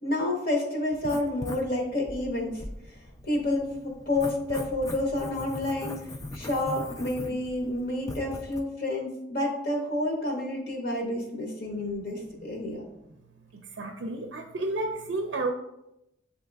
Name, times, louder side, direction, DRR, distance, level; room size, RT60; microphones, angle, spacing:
voice 1, 0.0-2.6 3.3-6.0 6.3-12.8, left 1 dB, 50° left, 0 dB, 0.9 m, -29 dB
Writing, 0.9-8.6, left 1 dB, 15° left, 0.3 m, -41 dB
voice 2, 13.5-15.5, right 2 dB, 75° right, 4 dB, 0.4 m, -31 dB
8.2 x 2.9 x 2.3 m, 0.86 s
head